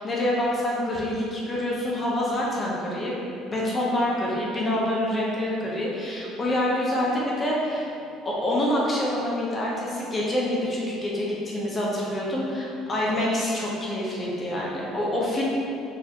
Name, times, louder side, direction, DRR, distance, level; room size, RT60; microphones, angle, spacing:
voice 1, 0.0-3.1 3.4-7.9 8.2-15.4, left 1 dB, 25° left, -5 dB, 0.5 m, -26 dB
4.0 x 2.5 x 2.8 m, 2.7 s
cardioid pair, 125°, 0 cm